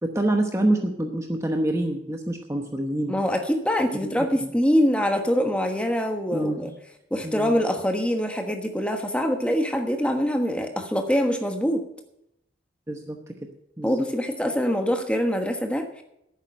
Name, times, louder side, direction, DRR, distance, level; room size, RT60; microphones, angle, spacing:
voice 1, 0.0-3.2 3.9-4.5 6.3-6.7 7.2-7.6 12.9-13.3 13.8-14.0, right 1 dB, 15° right, 3 dB, 0.9 m, -27 dB
voice 2, 3.1-6.7 7.1-11.8 13.8-16.0, equal, 5° left, 4 dB, 1.2 m, -24 dB
11.5 x 9.1 x 6.5 m, 0.81 s
head